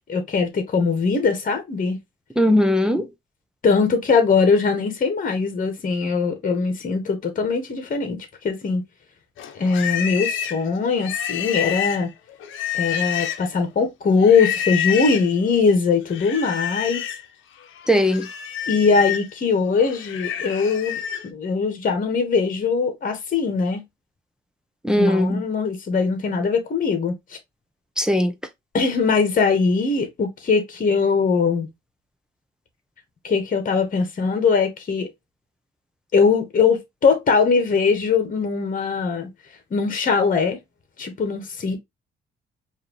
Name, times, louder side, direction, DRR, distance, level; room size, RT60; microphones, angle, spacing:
voice 1, 0.1-2.0 3.6-8.8 9.5-12.1 12.7-17.0 18.7-21.0 21.3-23.8 25.0-27.1 28.7-31.7 33.2-35.1 36.1-39.3 39.7-40.6 41.0-41.8, left 5 dB, 45° left, 1.5 m, -21 dB
voice 2, 2.4-3.1 17.9-18.3 24.8-25.4 28.0-28.3, equal, 5° right, 0.7 m, -18 dB
Livestock farm animals working animals, 9.4-13.6 14.2-15.3 16.1-17.2 17.6-21.3, left 10 dB, 80° left, 0.8 m, -28 dB
4.8 x 2.8 x 3.0 m
cardioid pair, 90°, 20 cm